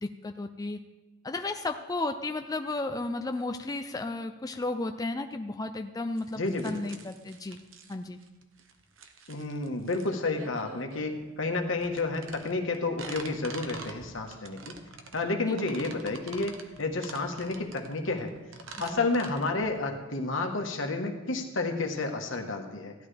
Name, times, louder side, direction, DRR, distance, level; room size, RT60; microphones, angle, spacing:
voice 1, 0.0-0.8 1.2-7.6 7.9-8.2 15.5-15.6 18.9-19.0, left 2 dB, 20° left, 6 dB, 0.4 m, -33 dB
sound 1, 6.2-19.9, right 4 dB, 75° right, 1.1 m, -46 dB
voice 2, 6.3-6.8 9.3-14.7 15.1-16.5 16.8-18.3 18.8-22.9, left 3 dB, 75° left, 4 dB, 1.4 m, -30 dB
15.5 x 11.0 x 3.4 m, 1.1 s
head